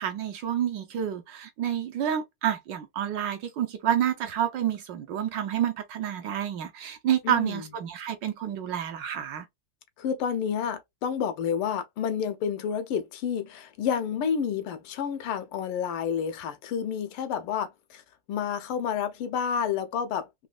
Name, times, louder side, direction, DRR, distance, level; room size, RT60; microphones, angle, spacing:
voice 1, 0.0-9.5, right 10 dB, 70° right, 1.2 m, -29 dB
voice 2, 7.3-7.7 10.0-18.0 18.3-20.5, left 7 dB, 90° left, 1.7 m, -30 dB
4.1 x 2.9 x 2.3 m
omnidirectional pair, 2.3 m